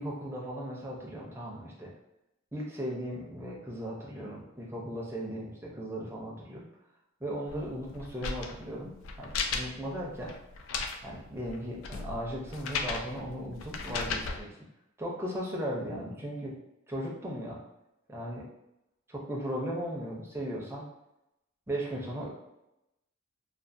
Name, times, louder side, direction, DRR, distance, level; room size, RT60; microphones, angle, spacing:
voice 1, 0.0-1.9 2.5-6.7 7.2-10.3 11.0-14.6 15.0-16.6 16.9-17.6 18.1-18.4 19.1-20.8 21.7-22.3, equal, 15° right, -3 dB, 0.5 m, -37 dB
sound 1, 7.5-14.4, left 4 dB, 80° left, 0.3 m, -36 dB
2.4 x 2.3 x 2.5 m, 0.88 s
head